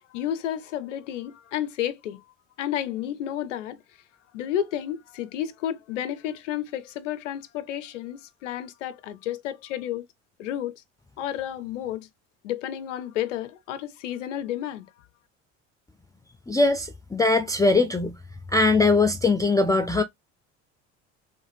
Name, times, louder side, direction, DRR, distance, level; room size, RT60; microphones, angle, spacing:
voice 1, 0.1-2.2 2.6-3.8 4.3-10.0 10.4-10.7 11.2-12.1 12.4-14.9, left 11 dB, 85° left, 0.5 m, -31 dB
voice 2, 16.5-18.2 18.5-20.0, left 3 dB, 10° left, 0.4 m, -21 dB
3.6 x 3.2 x 2.4 m
hypercardioid pair, 65°, 36 cm